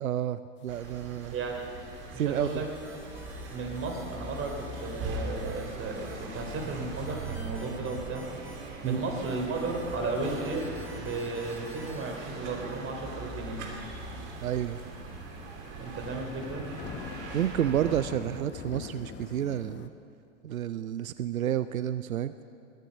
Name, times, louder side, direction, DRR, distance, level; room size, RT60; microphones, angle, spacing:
voice 1, 0.0-1.3 2.1-2.6 8.8-9.0 14.4-14.8 17.3-19.9 20.4-22.4, right 11 dB, 90° right, 13 dB, 0.5 m, -30 dB
sound 1, 0.7-18.0, right 2 dB, 55° right, 3.1 m, -40 dB
sound 2, 1.2-1.3 1.6-2.0 2.7-2.8 3.5-3.6 4.2-4.3 4.6-4.7 4.9-5.0 6.1-6.4 6.8-6.9 7.8-7.9 8.4-8.9 9.2-9.4 9.9-10.6 11.6-11.9 12.2-12.3 12.6-12.7 12.9-13.0 13.6-13.7 14.1-14.2 14.8-19.9, left 9 dB, 30° left, 0.8 m, -44 dB
voice 2, 1.3-1.7 2.1-2.7 3.5-8.3 8.8-10.7 10.9-13.6 15.8-16.7, right 3 dB, 30° right, 2 dB, 3.5 m, -34 dB
sound 3, 2.4-12.3, equal, 5° right, 2.1 m, -51 dB
21.5 x 10.0 x 6.3 m, 2.5 s
hypercardioid pair, 95°, 40 cm